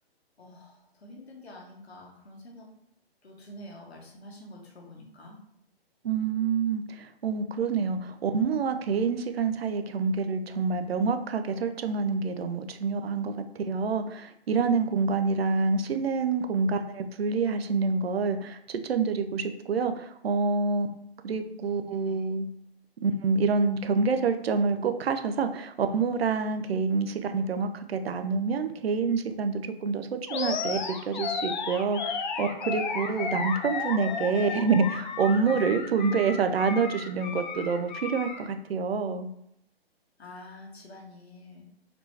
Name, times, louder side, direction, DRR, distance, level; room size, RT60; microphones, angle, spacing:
voice 1, 0.4-2.7 3.2-5.4 21.4-22.3 34.3-34.4 35.5-35.7 40.2-41.7, left 1 dB, 85° left, -1 dB, 1.4 m, -47 dB
voice 2, 6.0-20.9 21.2-22.5 23.0-39.3, right 5 dB, 75° right, 8 dB, 0.5 m, -27 dB
Animal, 30.3-38.4, left 5 dB, 50° left, 0.6 m, -33 dB
4.2 x 3.3 x 2.8 m, 0.76 s
hypercardioid pair, 145°, 31 cm